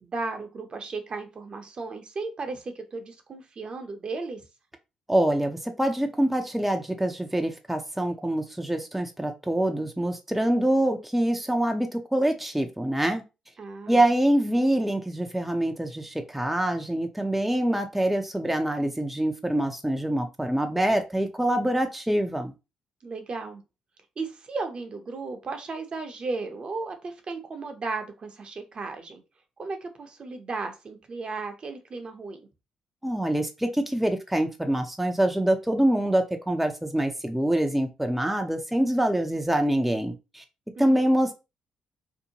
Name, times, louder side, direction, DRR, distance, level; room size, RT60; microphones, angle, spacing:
voice 1, 0.0-4.4 13.6-14.0 23.0-23.6 24.2-29.2 29.6-32.4 40.7-41.1, right 3 dB, 45° right, 5 dB, 0.6 m, -35 dB
voice 2, 5.1-13.2 13.9-22.5 33.0-40.4 40.8-41.3, right 1 dB, 5° right, 5 dB, 0.5 m, -25 dB
2.7 x 2.1 x 2.7 m, 0.27 s
supercardioid pair, 55°, 2 cm